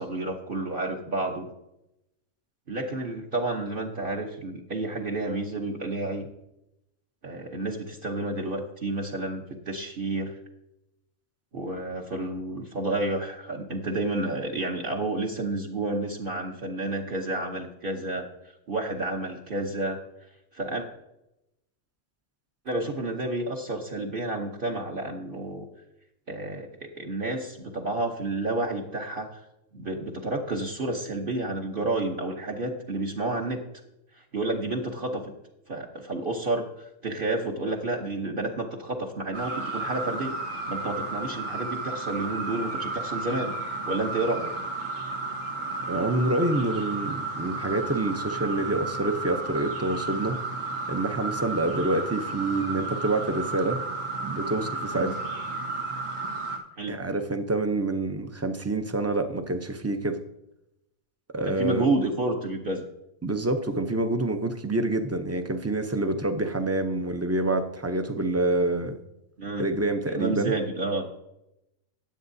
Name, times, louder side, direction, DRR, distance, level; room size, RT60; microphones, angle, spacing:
voice 1, 0.0-1.5 2.7-6.3 7.2-10.4 11.5-18.2 18.7-20.0 20.5-20.8 22.6-25.6 26.3-29.4 29.7-33.6 34.3-35.2 35.7-36.7 37.0-43.5 43.9-44.5 54.9-55.1 56.8-57.0 61.4-62.9 69.4-69.6 70.1-71.0, right 2 dB, 45° right, 1 dB, 1.1 m, -30 dB
sound 1, 39.3-56.6, right 3 dB, 80° right, 1.9 m, -33 dB
voice 2, 45.9-50.4 50.9-53.8 54.2-55.2 56.9-60.2 61.3-61.9 63.2-69.0 69.6-70.5, right 2 dB, 20° right, 7 dB, 0.4 m, -27 dB
17.5 x 7.9 x 2.7 m, 0.87 s
omnidirectional pair, 1.4 m